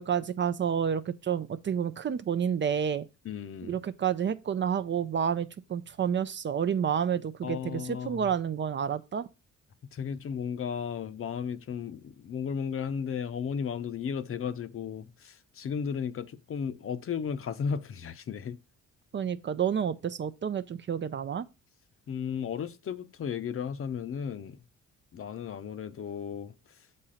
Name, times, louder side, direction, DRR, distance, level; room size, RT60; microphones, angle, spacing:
voice 1, 0.0-3.1 3.6-9.3 19.1-21.5, right 8 dB, 40° right, 0.5 m, -29 dB
voice 2, 3.2-3.8 7.4-8.3 9.9-18.6 22.1-24.6 25.1-26.5, left 7 dB, 45° left, 0.7 m, -34 dB
6.8 x 4.3 x 4.9 m
cardioid pair, 90°, 30 cm